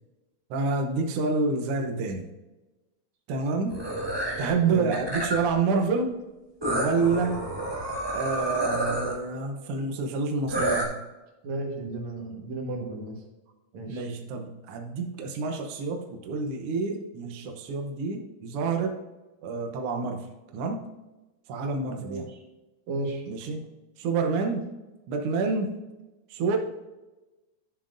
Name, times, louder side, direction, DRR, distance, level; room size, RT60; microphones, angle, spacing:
voice 1, 0.5-2.2 3.3-3.8 4.4-6.1 6.7-7.4 8.1-11.0 13.9-19.0 19.4-20.3 20.5-20.8 21.5-22.3 23.3-23.7 24.0-24.7 25.1-25.7 26.3-26.6, right 4 dB, 80° right, 3 dB, 1.2 m, -28 dB
sound 1, 3.7-4.5 4.9-5.5 6.6-9.1 10.5-10.8, right 1 dB, 15° right, 0.9 m, -29 dB
voice 2, 11.4-13.2 13.7-14.0 22.0-22.4 22.9-23.2, right 2 dB, 60° right, 0 dB, 2.6 m, -34 dB
12.5 x 7.3 x 2.6 m, 1.1 s
omnidirectional pair, 3.8 m